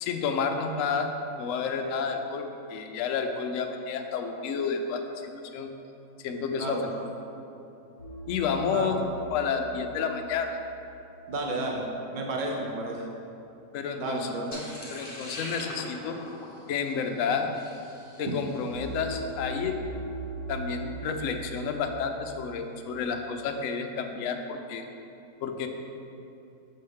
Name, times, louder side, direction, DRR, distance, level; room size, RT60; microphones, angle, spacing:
voice 1, 0.0-1.1 1.4-2.4 2.7-5.7 6.2-6.8 8.3-9.0 9.3-10.6 13.7-14.3 14.9-16.2 16.7-17.5 18.2-19.8 20.5-24.9 25.4-25.7, left 6 dB, 75° left, 5 dB, 0.7 m, -30 dB
voice 2, 6.6-7.1 8.7-8.9 11.3-11.8 12.1-13.0 14.0-14.6, right 2 dB, 50° right, -1 dB, 0.6 m, -32 dB
sound 1, 8.0-11.1 18.7-22.7, right 2 dB, 80° right, 2.1 m, -40 dB
sound 2, 14.5-18.8, left 1 dB, 40° left, 0.9 m, -42 dB
6.5 x 6.1 x 3.5 m, 2.8 s
omnidirectional pair, 1.8 m